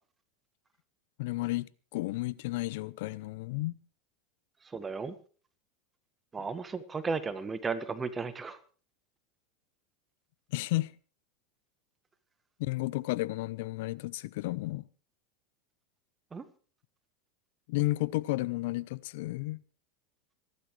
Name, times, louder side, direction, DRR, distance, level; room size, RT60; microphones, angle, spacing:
voice 1, 1.2-3.7 10.5-10.9 12.6-14.8 17.7-19.6, left 19 dB, 70° left, 0.7 m, -32 dB
voice 2, 4.6-5.1 6.3-8.6 16.3-16.4, right 4 dB, 20° right, 1.5 m, -34 dB
26.5 x 12.0 x 3.3 m
hypercardioid pair, 95°, 0 cm